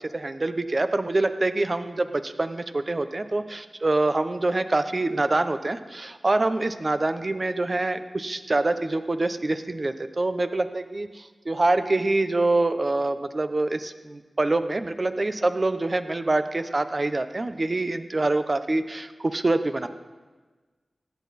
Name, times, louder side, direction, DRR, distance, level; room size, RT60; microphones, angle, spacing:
voice 1, 0.1-19.9, right 2 dB, 45° right, 10 dB, 0.8 m, -25 dB
16.5 x 10.5 x 4.2 m, 1.3 s
cardioid pair, 50°, 0 cm